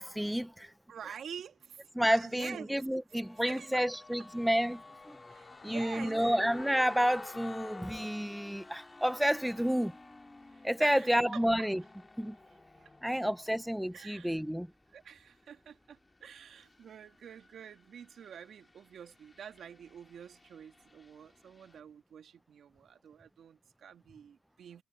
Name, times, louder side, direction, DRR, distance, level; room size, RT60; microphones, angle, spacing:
voice 1, 0.0-0.7 2.0-4.8 5.1-5.2 5.6-9.9 10.6-11.8 12.2-12.4 13.0-14.7, equal, ahead, 0.5 m, -30 dB
voice 2, 0.9-2.7 3.5-3.8 5.3-6.3 10.5-11.4 12.4-13.0 13.9-14.4 14.9-24.8, right 8 dB, 60° right, 2.0 m, -48 dB
sound 1, 3.1-21.8, left 2 dB, 20° left, 5.0 m, -53 dB
sound 2, 3.9-9.1 9.4-9.5, left 5 dB, 40° left, 3.7 m, -52 dB
cardioid pair, 90°, 0 cm